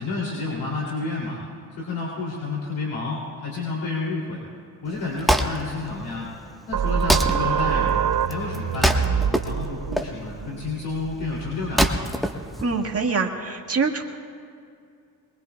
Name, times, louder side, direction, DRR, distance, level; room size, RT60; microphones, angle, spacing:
voice 1, 0.0-1.4 1.8-4.4 4.8-6.3 6.7-7.9 8.2-12.0, left 3 dB, 65° left, -4 dB, 3.1 m, -30 dB
Wood, 4.9-13.2, equal, ahead, 1.3 m, -26 dB
sound 1, 6.7-12.0, right 8 dB, 45° right, 0.8 m, -26 dB
voice 2, 12.6-14.0, right 4 dB, 30° right, 2 dB, 1.9 m, -24 dB
24.0 x 21.5 x 2.3 m, 2.4 s
hypercardioid pair, 50°, 48 cm